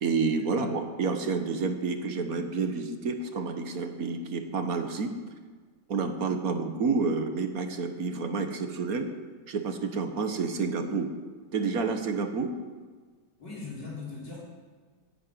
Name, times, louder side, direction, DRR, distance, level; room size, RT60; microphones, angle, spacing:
voice 1, 0.0-5.1 5.9-9.1 9.5-11.1 11.5-12.5, right 4 dB, 55° right, 6 dB, 1.5 m, -29 dB
voice 2, 13.4-14.4, left 4 dB, 85° left, -6 dB, 5.2 m, -39 dB
10.5 x 9.8 x 9.1 m, 1.5 s
omnidirectional pair, 1.9 m